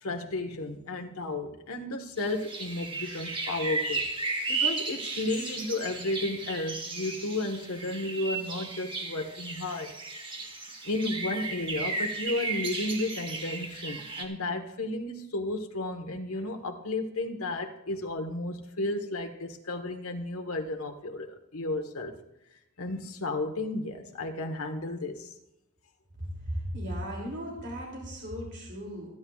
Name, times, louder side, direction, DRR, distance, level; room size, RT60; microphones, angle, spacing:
voice 1, 0.0-4.0 4.5-9.9 10.8-22.1 22.8-25.3, left 2 dB, 80° left, 1.4 m, -33 dB
sound 1, 2.2-14.2, right 3 dB, 25° right, 1.6 m, -34 dB
voice 2, 26.3-29.1, equal, 55° right, 2.8 m, -36 dB
27.0 x 9.8 x 2.4 m
head